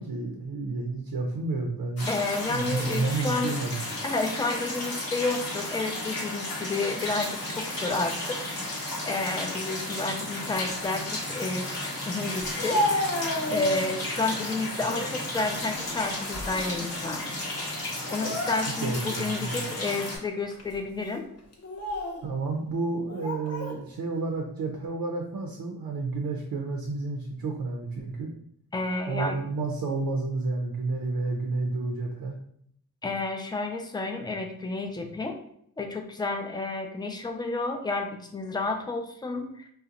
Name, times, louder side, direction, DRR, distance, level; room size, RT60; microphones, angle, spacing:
voice 1, 0.0-2.2 2.5-3.8 18.8-19.6 22.2-28.3 29.1-32.4, right 3 dB, 70° right, 1 dB, 0.5 m, -30 dB
sound 1, 2.0-20.2, left 1 dB, 75° left, 1.0 m, -33 dB
voice 2, 2.1-3.6 4.0-13.0 13.5-17.2 18.1-21.3 28.7-29.4 33.0-35.4 35.8-39.6, left 3 dB, 10° left, 4 dB, 0.4 m, -31 dB
Speech, 12.4-14.0 14.5-15.1 15.5-16.8 17.0-17.2 18.0-19.0 19.6-19.7 20.5-20.7 21.5-22.2 23.1-23.8, left 1 dB, 45° left, 0.7 m, -32 dB
2.7 x 2.1 x 2.5 m, 0.68 s
cardioid pair, 55°, 36 cm